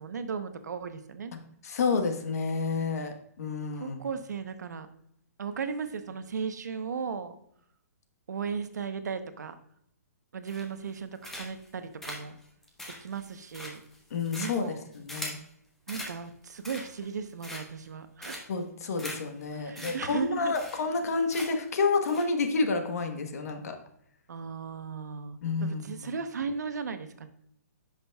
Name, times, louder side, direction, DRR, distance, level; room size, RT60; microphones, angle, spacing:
voice 1, 0.0-1.3 3.7-4.9 5.4-7.3 8.3-9.5 10.3-12.3 13.0-13.8 14.4-14.8 15.9-18.4 19.5-20.5 24.3-27.3, right 6 dB, 90° right, 9 dB, 0.8 m, -36 dB
voice 2, 1.3-4.0 14.1-15.4 18.5-23.8 25.4-26.1, left 4 dB, 65° left, 6 dB, 1.2 m, -30 dB
sound 1, 10.5-10.9 11.2-11.7 12.0-15.5 15.9-16.1 16.5-17.1 17.4-17.9 18.2-18.6 19.0-19.2 19.4-19.5 19.8-19.9 20.2-20.3 20.5-21.0 21.3-21.7 22.1-22.2, left 1 dB, 5° left, 0.9 m, -41 dB
10.0 x 5.9 x 2.3 m, 0.73 s
hypercardioid pair, 165°, 9 cm